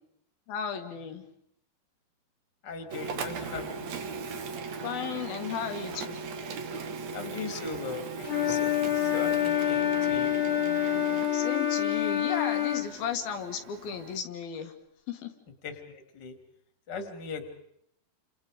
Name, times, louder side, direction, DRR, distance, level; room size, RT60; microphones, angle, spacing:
voice 1, 0.5-1.2 4.8-6.2 11.3-14.7 15.1-15.3, left 7 dB, 65° left, 6 dB, 3.4 m, -35 dB
voice 2, 2.6-3.9 7.1-10.5 15.6-16.3 16.9-17.4, left 5 dB, 30° left, 6 dB, 2.8 m, -39 dB
Printer, 2.9-14.2, right 4 dB, 55° right, 2.1 m, -38 dB
Wind instrument woodwind instrument, 8.2-12.9, left 11 dB, 45° left, 2.4 m, -27 dB
29.5 x 28.0 x 5.1 m, 0.72 s
omnidirectional pair, 5.0 m